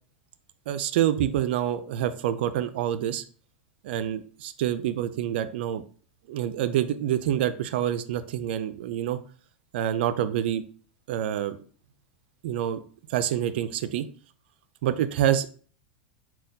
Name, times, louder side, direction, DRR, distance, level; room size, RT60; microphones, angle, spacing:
voice 1, 0.7-3.2 3.8-5.8 6.3-9.2 9.7-10.6 11.1-11.6 12.4-12.8 13.1-14.1 14.8-15.5, right 11 dB, 70° right, 12 dB, 0.4 m, -27 dB
4.0 x 2.3 x 3.9 m, 0.42 s
hypercardioid pair, 115°, 6 cm